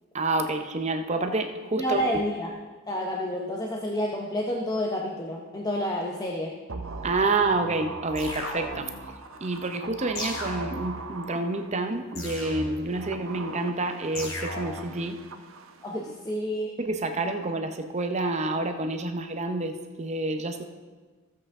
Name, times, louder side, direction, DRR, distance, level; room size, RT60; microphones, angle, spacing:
voice 1, 0.1-2.1 7.0-8.9 9.4-15.2 16.8-20.6, right 2 dB, 35° right, 6 dB, 0.6 m, -28 dB
voice 2, 1.8-2.5 2.9-6.5 15.8-16.7, equal, 20° left, 0 dB, 0.7 m, -29 dB
sound 1, 6.7-12.2 12.8-16.0 16.3-16.4, right 4 dB, 75° right, 0.7 m, -40 dB
sound 2, 8.2-9.1 10.2-11.1 12.2-13.1 14.2-15.0, left 2 dB, 75° left, 2.2 m, -36 dB
15.0 x 7.6 x 3.6 m, 1.3 s
head